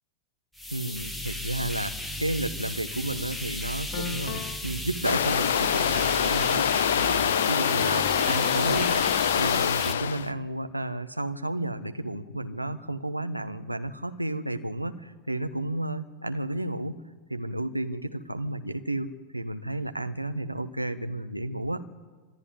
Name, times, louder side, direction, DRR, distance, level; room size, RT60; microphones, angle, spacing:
sound 1, 0.6-9.9, left 1 dB, 5° left, 1.7 m, -35 dB
voice 1, 0.7-6.7 7.0-9.1 9.3-17.0 17.3-21.8, right 1 dB, 85° right, 8 dB, 1.2 m, -32 dB
sound 2, 3.1-3.3 3.9-4.7 7.8-8.5, left 7 dB, 40° left, 3.3 m, -36 dB
sound 3, 5.0-10.3, left 8 dB, 60° left, 0.7 m, -25 dB
26.0 x 12.5 x 9.7 m, 1.3 s
figure-of-eight pair, 90°, 0 cm